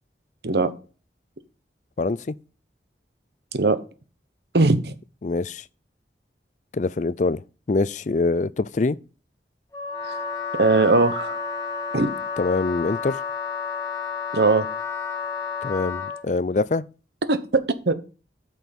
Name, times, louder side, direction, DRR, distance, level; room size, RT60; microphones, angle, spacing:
voice 1, 2.0-2.3 5.2-5.6 6.7-7.4 7.7-9.0 12.4-13.2 15.6-16.8, left 3 dB, 45° left, 0.4 m, -24 dB
voice 2, 4.5-4.9 10.6-11.4 11.9-12.1 14.3-14.7 17.3-17.9, right 3 dB, 70° right, 1.1 m, -19 dB
Wind instrument woodwind instrument, 9.7-16.2, left 6 dB, 20° left, 1.9 m, -31 dB
8.9 x 6.2 x 5.3 m
head